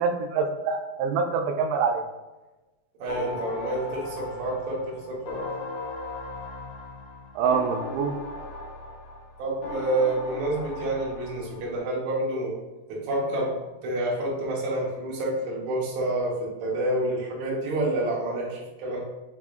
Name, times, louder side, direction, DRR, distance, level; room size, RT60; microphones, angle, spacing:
voice 1, 0.0-2.0 7.4-8.2, right 5 dB, 90° right, 5 dB, 2.8 m, -25 dB
voice 2, 3.0-5.4 9.4-12.5 12.9-13.5 13.8-19.0, right 1 dB, 70° right, -4 dB, 1.7 m, -28 dB
sound 1, 3.1-11.8, left 3 dB, 85° left, 2.5 m, -37 dB
6.1 x 3.5 x 2.4 m, 1.1 s
omnidirectional pair, 5.0 m